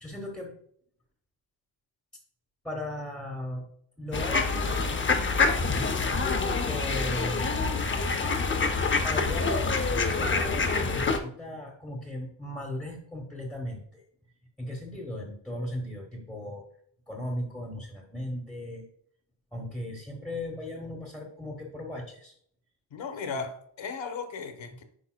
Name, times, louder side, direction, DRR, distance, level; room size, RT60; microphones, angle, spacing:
voice 1, 0.0-0.5 2.6-3.7 4.0-4.8 6.7-7.8 9.0-14.0 14.6-16.6 17.1-18.8 19.5-22.3 23.3-23.4, left 1 dB, ahead, 0.9 m, -37 dB
sound 1, 4.1-11.2, left 4 dB, 25° left, 0.6 m, -26 dB
voice 2, 22.9-24.8, left 4 dB, 80° left, 1.2 m, -36 dB
10.0 x 5.3 x 2.2 m
wide cardioid pair, 165°, 45 cm